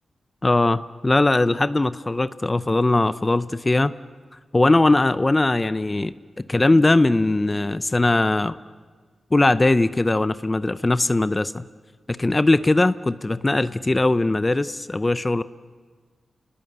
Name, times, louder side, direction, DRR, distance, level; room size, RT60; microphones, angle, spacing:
voice 1, 0.4-3.9 4.5-6.1 6.5-8.6 9.3-11.7 12.1-15.4, left 2 dB, 30° left, 14 dB, 0.6 m, -20 dB
29.0 x 20.0 x 8.0 m, 1.5 s
cardioid pair, 55°, 0 cm